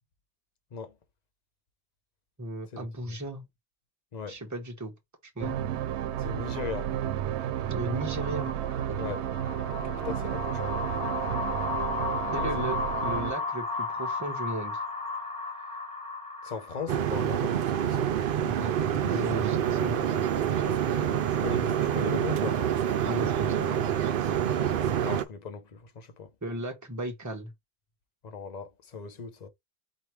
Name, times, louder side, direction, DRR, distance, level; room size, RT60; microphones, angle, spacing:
voice 1, 2.4-3.5 4.3-4.9 5.4-5.6 7.7-8.5 8.9-9.0 12.3-14.8 18.4-18.8 19.0-20.0 23.0-23.8 26.4-27.5, right 1 dB, 15° right, 1.1 m, -35 dB
sound 1, 5.4-13.3, right 10 dB, 90° right, 0.9 m, -32 dB
voice 2, 6.2-6.9 9.0-9.2 9.8-10.7 12.4-12.6 16.4-18.1 21.4-22.7 25.0-26.3 28.2-29.5, left 5 dB, 45° left, 0.8 m, -38 dB
sound 2, 8.0-17.5, left 4 dB, 5° left, 1.7 m, -34 dB
sound 3, 16.9-25.2, right 9 dB, 60° right, 0.7 m, -27 dB
4.5 x 3.2 x 3.1 m
omnidirectional pair, 1.1 m